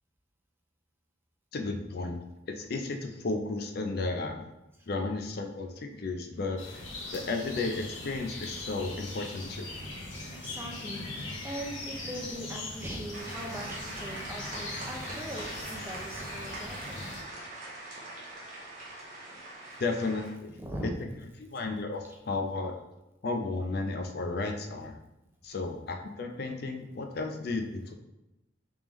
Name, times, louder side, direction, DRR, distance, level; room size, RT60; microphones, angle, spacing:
voice 1, 1.5-2.2 2.5-4.5 4.9-6.8 7.1-9.7 19.8-20.5 21.4-22.7 23.2-25.0 25.4-27.9, left 3 dB, 50° left, 4 dB, 0.4 m, -33 dB
sound 1, 6.6-17.2, left 2 dB, 80° left, 0.9 m, -40 dB
voice 2, 10.3-17.0 20.6-20.9 22.1-22.2, equal, 10° right, 0 dB, 0.5 m, -40 dB
sound 2, 13.1-20.3, right 2 dB, 40° right, 0.8 m, -42 dB
3.5 x 3.4 x 3.0 m, 0.93 s
head